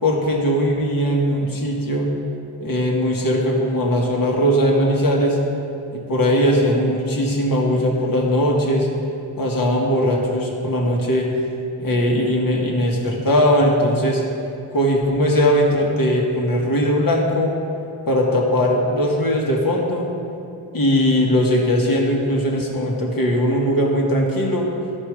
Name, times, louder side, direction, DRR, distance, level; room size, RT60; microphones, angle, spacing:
voice 1, 0.0-2.1 2.6-5.4 5.9-8.9 9.4-11.3 11.8-14.2 14.7-17.5 18.1-20.1 20.7-24.7, equal, 50° left, -1 dB, 1.9 m, -19 dB
12.5 x 5.3 x 4.9 m, 2.7 s
cardioid pair, 50°, 45 cm